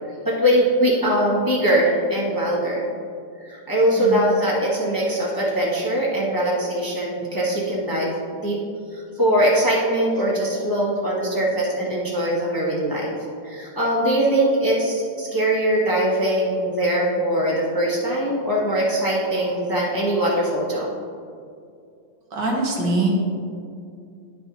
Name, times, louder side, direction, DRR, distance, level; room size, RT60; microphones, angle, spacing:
voice 1, 0.2-2.8 3.4-8.6 8.9-13.1 13.4-20.9, right 1 dB, 15° left, -5 dB, 0.9 m, -21 dB
voice 2, 22.3-23.1, right 2 dB, 85° right, -2 dB, 1.9 m, -23 dB
11.0 x 5.4 x 3.0 m, 2.4 s
omnidirectional pair, 1.9 m